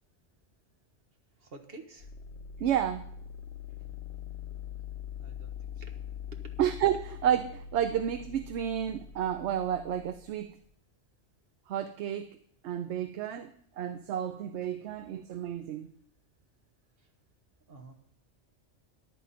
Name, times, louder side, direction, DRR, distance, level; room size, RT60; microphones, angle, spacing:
voice 1, 1.4-2.1 5.2-6.0 6.4-6.5 17.7-17.9, right 3 dB, 55° right, 4 dB, 1.7 m, -50 dB
sound 1, 2.0-10.7, left 8 dB, 65° left, 1.1 m, -43 dB
voice 2, 2.6-3.1 6.6-10.5 11.7-12.3 12.6-15.9, right 10 dB, 75° right, 10 dB, 0.9 m, -31 dB
14.0 x 10.5 x 4.2 m, 0.67 s
omnidirectional pair, 1.2 m